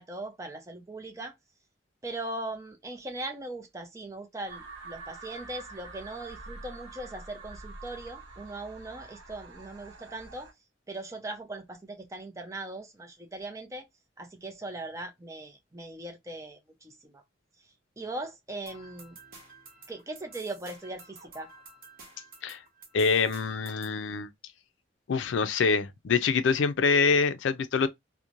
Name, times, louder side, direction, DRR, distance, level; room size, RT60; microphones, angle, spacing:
voice 1, 0.0-1.3 2.0-10.5 10.9-13.9 14.2-17.2 18.0-19.2 19.9-21.5, right 2 dB, 15° right, 0.5 m, -39 dB
sound 1, 4.5-10.5, right 3 dB, 80° right, 0.8 m, -46 dB
sound 2, 18.7-24.0, right 3 dB, 50° right, 0.9 m, -51 dB
voice 2, 22.9-24.3 25.1-27.9, left 5 dB, 80° left, 0.4 m, -25 dB
3.0 x 2.1 x 2.4 m
head